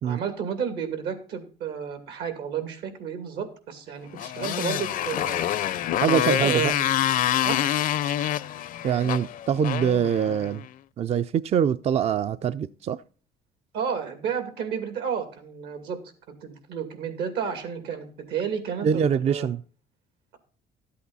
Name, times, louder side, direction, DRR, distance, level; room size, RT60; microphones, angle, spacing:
voice 1, 0.0-5.4 6.3-6.9 7.4-7.6 13.7-16.0 16.3-19.5, right 7 dB, 80° right, 2.6 m, -31 dB
Motorcycle, 4.1-10.7, left 11 dB, 55° left, 0.5 m, -26 dB
voice 2, 6.0-6.7 8.8-10.6 11.0-13.0 18.8-19.6, right 8 dB, 40° right, 0.4 m, -24 dB
12.5 x 8.5 x 4.0 m
cardioid pair, 110°, 17 cm